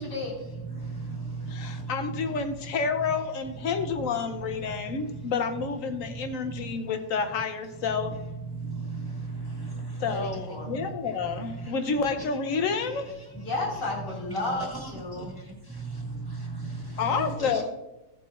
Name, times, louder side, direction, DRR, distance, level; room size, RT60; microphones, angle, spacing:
voice 1, 0.0-0.4 10.1-10.7 13.3-15.3 17.1-17.6, left 2 dB, 75° left, -3 dB, 3.1 m, -33 dB
voice 2, 0.5-2.6 3.0-3.1 3.8-3.9 4.7-5.2 6.0-6.8 8.1-11.7 12.2-12.3 12.9-13.4 14.3-17.6, right 3 dB, 15° right, -2 dB, 1.5 m, -37 dB
voice 3, 1.5-8.1 10.0-13.1 17.0-17.6, left 5 dB, 55° left, 8 dB, 1.1 m, -29 dB
15.5 x 7.6 x 2.5 m, 1.0 s
omnidirectional pair, 1.9 m